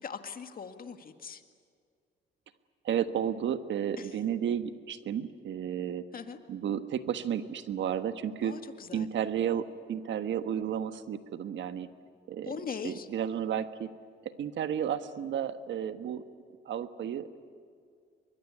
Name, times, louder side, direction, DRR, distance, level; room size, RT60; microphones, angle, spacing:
voice 1, 0.0-1.4 4.0-4.1 6.1-6.4 8.4-9.1 12.4-13.1, left 6 dB, 45° left, 7 dB, 2.0 m, -40 dB
voice 2, 2.8-6.0 6.5-8.5 8.9-11.9 12.3-12.5 12.8-13.9 14.2-16.2 16.6-17.4, right 9 dB, 70° right, 10 dB, 1.4 m, -32 dB
23.5 x 22.0 x 9.8 m, 2.2 s
cardioid pair, 90°, 20 cm